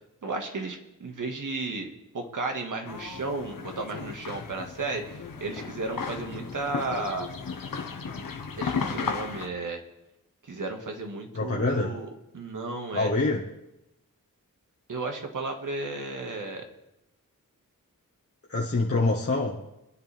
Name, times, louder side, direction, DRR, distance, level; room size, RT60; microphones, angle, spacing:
voice 1, 0.2-7.3 8.6-9.8 10.4-12.1 12.3-13.1 14.9-16.7, right 3 dB, 70° right, 3 dB, 2.1 m, -34 dB
sound 1, 2.8-9.5, left 5 dB, 85° left, 1.4 m, -35 dB
voice 2, 11.3-11.9 12.9-13.4 18.5-19.6, left 3 dB, 45° left, -4 dB, 1.6 m, -25 dB
25.0 x 10.5 x 3.6 m, 0.89 s
wide cardioid pair, 105°, 33 cm